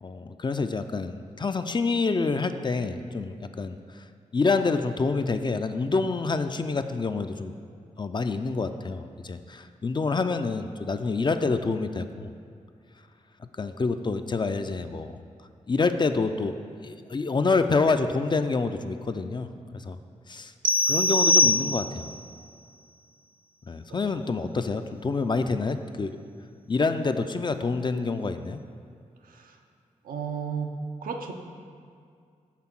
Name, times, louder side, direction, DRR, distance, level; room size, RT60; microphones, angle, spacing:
voice 1, 0.0-3.8 4.3-7.5 8.0-12.3 13.6-15.2 15.7-16.5 16.8-20.0 20.3-20.5 20.9-22.1 23.7-26.2 26.7-28.6, left 4 dB, 35° left, 9 dB, 0.4 m, -27 dB
sound 1, 20.6-22.2, left 2 dB, 35° right, 0.4 m, -22 dB
voice 2, 29.2-29.6 30.0-30.8 31.0-31.3, right 6 dB, 85° right, 3 dB, 0.5 m, -33 dB
5.8 x 3.6 x 5.9 m, 2.3 s
cardioid pair, 45°, 14 cm